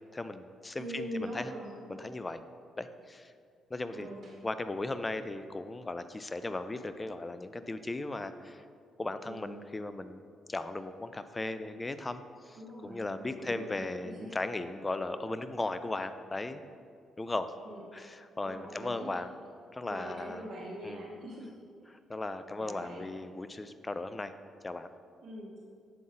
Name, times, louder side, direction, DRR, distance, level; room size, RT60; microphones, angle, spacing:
voice 1, 0.1-1.5 1.9-2.4 2.8-3.3 3.7-4.1 4.4-8.6 9.0-10.2 10.5-16.6 17.2-17.5 17.9-19.3 19.7-20.5 20.8-21.1 21.9-24.3 24.6-24.9, left 2 dB, 20° left, 11 dB, 0.3 m, -37 dB
voice 2, 0.8-1.7 3.9-4.2 9.2-9.6 12.5-14.3 17.7-17.8 18.4-19.1 19.8-21.5 22.6-23.1 25.2-25.6, right 1 dB, 60° right, -6 dB, 0.9 m, -42 dB
7.4 x 3.9 x 3.9 m, 2.2 s
cardioid pair, 90°, 0 cm